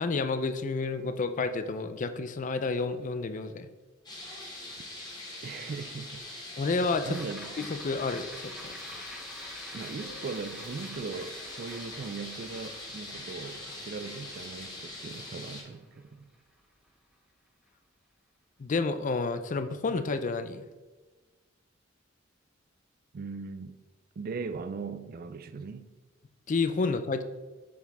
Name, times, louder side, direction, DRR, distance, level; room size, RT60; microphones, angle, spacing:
voice 1, 0.0-3.7 6.6-7.2 7.6-9.1 18.6-20.6 26.5-27.2, left 3 dB, 40° left, 0.4 m, -30 dB
sound 1, 4.1-15.6, left 2 dB, 20° left, 1.5 m, -42 dB
voice 2, 5.4-6.6 7.0-7.6 9.7-16.3 23.1-23.8 24.2-25.9, right 4 dB, 45° right, 0.4 m, -39 dB
sound 2, 6.8-17.3 17.7-17.8, equal, 5° right, 0.7 m, -50 dB
7.2 x 4.9 x 3.5 m
head